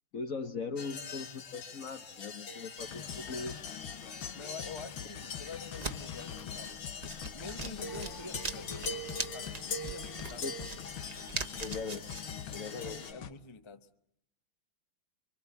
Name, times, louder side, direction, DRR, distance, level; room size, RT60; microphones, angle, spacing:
voice 1, 0.1-3.6 10.4-10.5 11.6-12.1 12.5-13.0, left 4 dB, 45° left, 8 dB, 1.5 m, -39 dB
sound 1, 0.8-13.1, left 4 dB, 65° left, 2.4 m, -43 dB
sound 2, 2.8-13.3, left 9 dB, 80° left, 2.1 m, -45 dB
voice 2, 4.3-6.7 7.3-10.4 12.4-13.9, left 3 dB, 20° left, 8 dB, 1.0 m, -47 dB
sound 3, 5.6-12.2, right 3 dB, 25° right, 1.1 m, -42 dB
25.5 x 25.0 x 7.2 m, 0.74 s
omnidirectional pair, 2.2 m